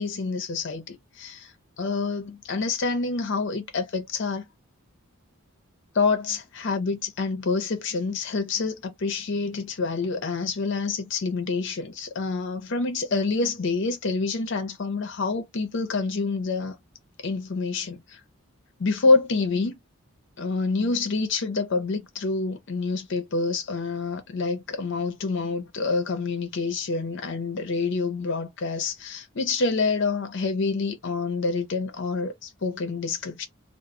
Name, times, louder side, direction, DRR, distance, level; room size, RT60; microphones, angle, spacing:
voice 1, 0.0-4.4 5.9-16.8 17.2-18.2 18.8-19.7 20.4-33.5, left 4 dB, 55° left, 0.5 m, -27 dB
2.0 x 2.0 x 3.6 m
head